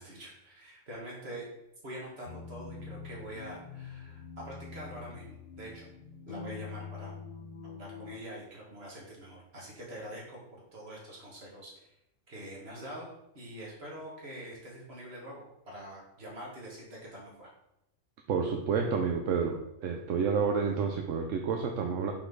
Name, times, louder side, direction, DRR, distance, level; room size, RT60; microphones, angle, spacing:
voice 1, 0.0-1.5 1.8-5.9 6.3-7.1 7.6-11.7 12.3-17.5, right 1 dB, 50° right, -4 dB, 2.1 m, -45 dB
sound 1, 2.2-8.2, left 5 dB, 55° left, 0.6 m, -45 dB
voice 2, 18.3-22.1, right 5 dB, 75° right, 3 dB, 1.0 m, -29 dB
5.7 x 4.0 x 5.4 m, 0.85 s
omnidirectional pair, 1.4 m